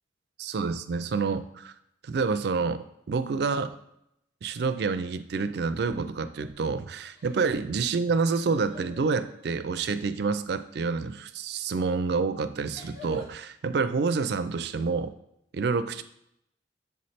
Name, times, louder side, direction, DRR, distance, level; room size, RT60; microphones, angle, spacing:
voice 1, 0.4-1.7 2.0-3.8 4.4-15.1 15.5-16.0, right 4 dB, 65° right, 12 dB, 0.4 m, -28 dB
sound 1, 6.4-6.7 7.1-9.6 11.4-11.6 12.7-13.4, left 2 dB, 30° left, 1.3 m, -50 dB
7.0 x 3.2 x 4.2 m, 0.77 s
head